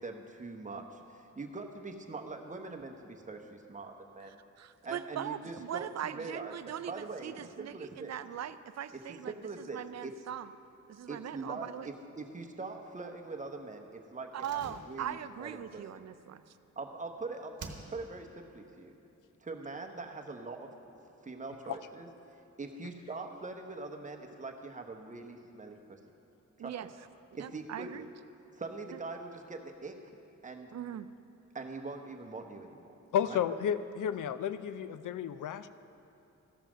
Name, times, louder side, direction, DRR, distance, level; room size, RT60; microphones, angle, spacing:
voice 1, 0.0-4.4 4.8-7.3 7.6-8.1 9.3-10.1 11.1-15.8 16.8-17.6 17.9-18.9 19.4-20.7 21.2-22.1 22.6-26.0 26.6-26.9 27.4-28.1 28.5-29.9 30.4-30.8 31.5-32.9 33.2-33.4, right 3 dB, 25° right, 3 dB, 0.9 m, -43 dB
voice 2, 4.6-10.5 10.9-11.9 14.3-16.4 26.6-26.9 27.3-28.1 28.9-29.0 30.7-31.1, right 10 dB, 60° right, 13 dB, 0.4 m, -40 dB
Slam, 14.3-17.1 17.6-18.3 18.6-18.7, right 4 dB, 80° right, 1.0 m, -50 dB
voice 3, 33.1-35.7, left 9 dB, 85° left, 13 dB, 0.5 m, -32 dB
14.0 x 5.6 x 6.2 m, 2.9 s
wide cardioid pair, 110°, 30 cm